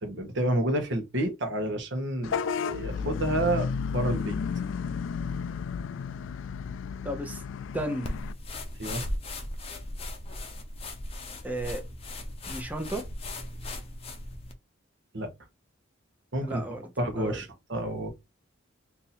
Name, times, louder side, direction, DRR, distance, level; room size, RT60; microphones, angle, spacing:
voice 1, 0.0-4.4 8.8-9.1 15.1-15.3 16.3-18.1, right 1 dB, 65° right, 1.0 m, -30 dB
Vehicle horn car horn honking / Bus, 2.2-8.3, left 6 dB, 70° left, 0.3 m, -32 dB
voice 2, 7.0-7.4 7.7-8.2 11.4-11.8 12.5-13.1 16.4-16.8 17.1-17.4, right 1 dB, 10° right, 0.7 m, -33 dB
sound 1, 8.0-14.5, left 1 dB, 30° left, 0.6 m, -37 dB
2.8 x 2.6 x 4.0 m
head